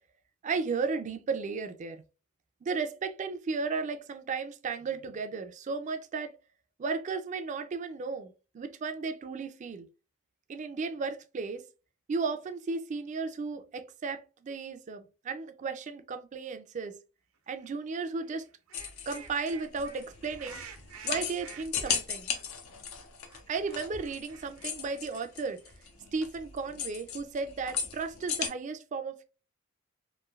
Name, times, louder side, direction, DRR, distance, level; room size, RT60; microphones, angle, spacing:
voice 1, 0.4-2.0 2.6-6.3 6.8-9.9 10.5-11.6 12.1-17.0 17.5-18.5 19.1-20.6 21.0-22.3 23.5-25.6 26.1-29.2, right 4 dB, 35° right, 0.3 m, -34 dB
sound 1, 17.5-17.8 18.2-22.5 22.7-22.8 23.0-25.8, right 6 dB, 80° right, 0.6 m, -50 dB
sound 2, 18.7-28.5, left 7 dB, 90° left, 0.6 m, -37 dB
3.1 x 2.6 x 2.3 m
head